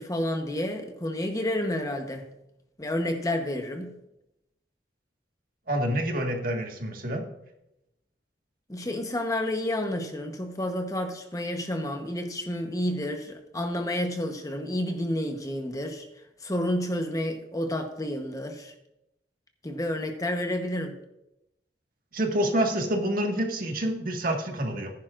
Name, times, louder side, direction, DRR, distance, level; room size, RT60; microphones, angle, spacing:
voice 1, 0.0-2.3 2.8-3.9 8.7-16.1 16.4-18.7 19.6-21.0, left 1 dB, 20° left, 5 dB, 1.0 m, -30 dB
voice 2, 5.7-7.2 22.1-24.9, right 1 dB, 50° right, 2 dB, 1.7 m, -27 dB
14.5 x 10.5 x 2.5 m, 0.85 s
head